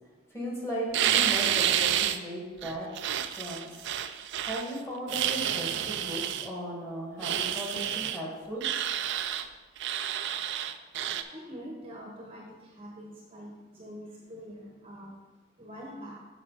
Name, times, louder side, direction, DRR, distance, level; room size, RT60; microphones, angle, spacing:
voice 1, 0.3-2.9 3.3-3.7 4.4-8.6, equal, 10° left, -4 dB, 2.0 m, -36 dB
sound 1, 0.9-2.2 2.6-4.7 5.1-6.5 7.2-8.2 8.6-9.5 9.8-11.2, right 10 dB, 60° right, 0.4 m, -29 dB
voice 2, 11.3-15.1 15.6-16.2, equal, 25° right, -2 dB, 1.0 m, -44 dB
7.2 x 5.9 x 4.2 m, 1.2 s
head